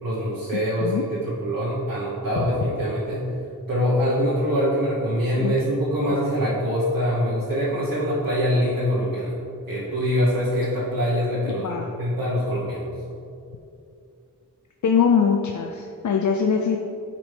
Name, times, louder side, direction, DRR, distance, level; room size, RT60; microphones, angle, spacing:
voice 1, 0.0-3.3 3.7-9.4 9.7-12.9, equal, 85° right, -9 dB, 1.3 m, -24 dB
voice 2, 0.5-1.0 5.4-5.5 11.6-11.9 14.8-16.8, left 6 dB, 60° left, 3 dB, 0.5 m, -22 dB
8.7 x 5.0 x 3.4 m, 2.6 s
wide cardioid pair, 100°, 34 cm